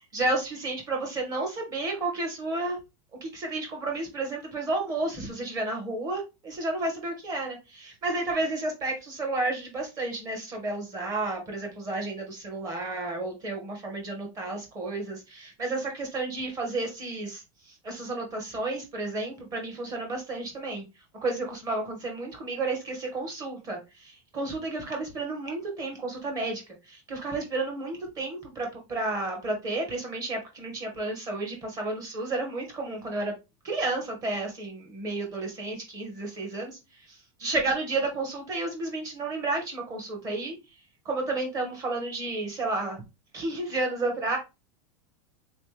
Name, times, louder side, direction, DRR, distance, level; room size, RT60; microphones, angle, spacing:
voice 1, 0.1-2.8 3.2-17.4 17.8-20.8 21.2-26.6 26.9-33.3 33.6-36.8 37.1-40.5 41.0-43.0 43.3-44.4, right 2 dB, 25° right, 2 dB, 1.1 m, -31 dB
3.6 x 3.2 x 3.1 m, 0.25 s
supercardioid pair, 170°, 16 cm